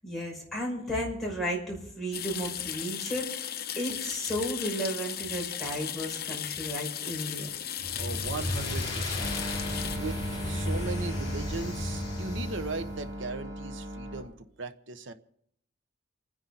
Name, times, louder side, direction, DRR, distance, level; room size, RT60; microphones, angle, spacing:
voice 1, 0.0-7.5, equal, ahead, -4 dB, 6.2 m, -34 dB
sound 1, 2.1-10.0, left 10 dB, 50° left, 1.0 m, -36 dB
sound 2, 7.8-13.1, left 1 dB, 25° left, 5.4 m, -34 dB
voice 2, 8.0-9.4 9.9-15.1, right 3 dB, 75° right, 9 dB, 1.1 m, -38 dB
sound 3, 9.2-14.2, equal, 25° right, 7.6 m, -37 dB
29.5 x 10.0 x 4.1 m, 0.69 s
head